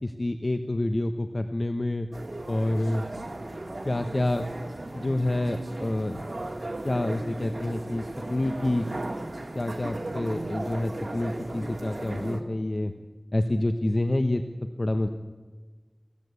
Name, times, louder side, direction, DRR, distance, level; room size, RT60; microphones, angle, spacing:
voice 1, 0.0-2.1 2.5-3.0 3.8-4.4 4.9-6.2 6.8-8.0 8.3-8.8 9.5-12.9 13.3-14.4 14.8-15.1, left 1 dB, 55° left, 7 dB, 1.2 m, -27 dB
sound 1, 2.1-12.4, right 2 dB, 65° right, 2.4 m, -36 dB
23.5 x 16.5 x 8.4 m, 1.4 s
wide cardioid pair, 45°, 0 cm